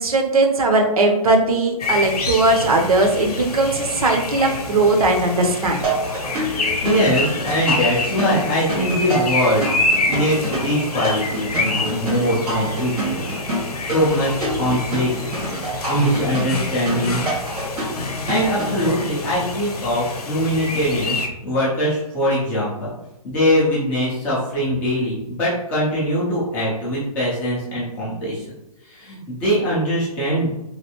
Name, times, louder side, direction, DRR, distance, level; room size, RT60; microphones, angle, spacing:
voice 1, 0.0-5.8, right 2 dB, 70° right, 3 dB, 0.7 m, -18 dB
sound 1, 1.8-21.3, left 3 dB, 85° left, 0.7 m, -27 dB
sound 2, 5.8-18.9, right 2 dB, 90° right, 1.4 m, -27 dB
voice 2, 6.8-9.7 10.1-13.2 13.8-15.1 15.9-17.2 18.3-21.2 21.4-22.9 23.2-28.4 28.9-30.5, equal, 10° left, -8 dB, 0.4 m, -22 dB
3.2 x 2.6 x 2.8 m, 0.92 s
hypercardioid pair, 165°, 19 cm